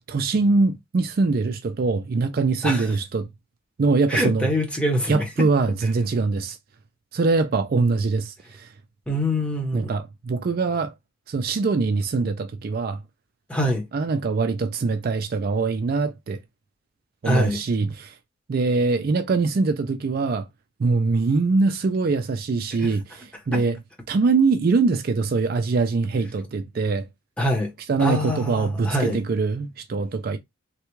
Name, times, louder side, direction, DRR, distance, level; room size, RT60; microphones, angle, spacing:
voice 1, 0.1-3.3 3.8-4.5 5.1-6.6 7.1-8.7 9.7-10.9 11.3-13.0 13.9-16.4 17.2-18.2 18.5-20.5 20.8-23.8 24.1-27.1 27.9-30.4, right 3 dB, 45° right, 0.4 m, -23 dB
voice 2, 2.6-2.9 4.1-5.5 9.1-9.9 13.5-13.8 17.2-17.6 22.8-22.9 23.5-23.6 27.4-27.7 28.0-29.2, equal, 5° left, 0.8 m, -24 dB
3.2 x 2.3 x 3.1 m
head